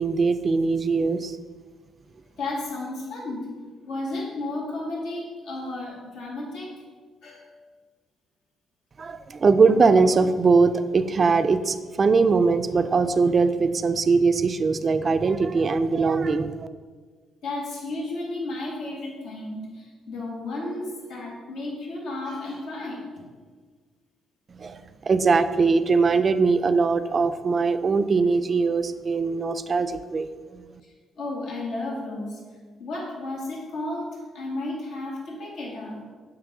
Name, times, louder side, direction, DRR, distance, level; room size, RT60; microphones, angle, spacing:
voice 1, 0.0-1.4 9.0-16.7 24.6-30.3 30.5-30.6, right 4 dB, 40° right, 11 dB, 0.4 m, -21 dB
voice 2, 2.4-3.5 3.8-6.7 7.2-7.6 17.4-23.0 31.2-32.4 32.8-36.0, left 2 dB, 85° left, -4 dB, 2.1 m, -33 dB
7.5 x 3.0 x 6.1 m, 1.5 s
cardioid pair, 90°, 0 cm